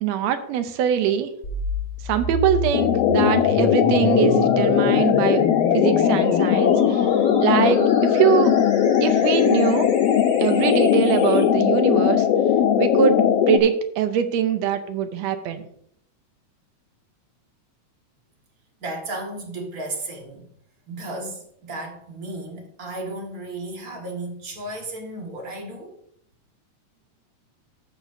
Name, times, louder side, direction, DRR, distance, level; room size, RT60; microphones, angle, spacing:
voice 1, 0.0-1.3 2.0-5.4 5.7-7.1 7.4-8.5 9.0-9.9 10.4-12.3 12.8-13.2 13.5-15.7, right 9 dB, 75° right, 8 dB, 1.7 m, -22 dB
sound 1, 1.4-11.4, left 2 dB, 30° left, 1.3 m, -31 dB
sound 2, 2.7-13.6, left 9 dB, 80° left, 1.4 m, -19 dB
voice 2, 18.8-20.5 20.9-25.9, right 2 dB, 40° right, 0 dB, 1.5 m, -34 dB
14.0 x 6.1 x 2.7 m, 0.69 s
omnidirectional pair, 3.4 m